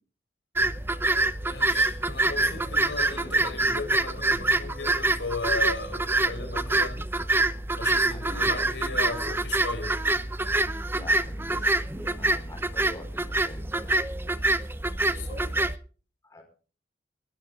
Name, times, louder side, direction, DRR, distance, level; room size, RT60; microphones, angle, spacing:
sound 1, 0.6-15.7, right 2 dB, 15° right, 0.7 m, -26 dB
voice 1, 1.4-7.0 7.8-10.0 15.0-15.5, left 3 dB, 85° left, 4.7 m, -36 dB
voice 2, 8.1-9.0 10.9-13.9 16.2-16.4, left 1 dB, 20° left, 4.6 m, -45 dB
21.0 x 13.5 x 3.7 m
head